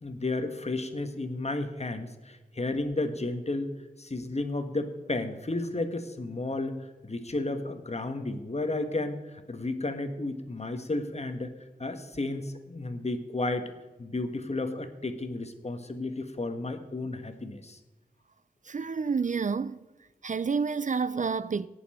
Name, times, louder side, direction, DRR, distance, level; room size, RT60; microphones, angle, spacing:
voice 1, 0.0-3.7 4.0-11.5 11.8-13.7 14.0-17.8, left 2 dB, 45° left, 1.3 m, -33 dB
voice 2, 18.7-19.9 20.2-21.7, right 5 dB, 55° right, 0.4 m, -29 dB
18.0 x 7.0 x 4.3 m
wide cardioid pair, 65°, 16 cm